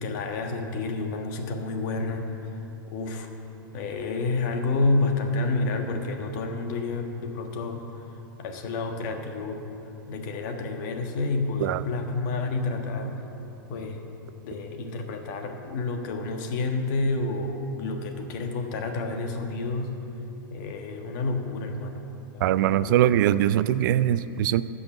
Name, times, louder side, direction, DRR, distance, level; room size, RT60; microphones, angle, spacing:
voice 1, 0.0-2.6 2.9-3.3 3.7-7.8 8.4-9.6 10.1-13.1 13.7-14.0 14.4-19.9 20.5-22.0 22.3-23.1, left 3 dB, 60° left, 4 dB, 1.5 m, -29 dB
voice 2, 22.4-24.6, right 12 dB, 65° right, 15 dB, 0.4 m, -22 dB
15.5 x 5.6 x 7.1 m, 2.9 s
hypercardioid pair, 100°, 11 cm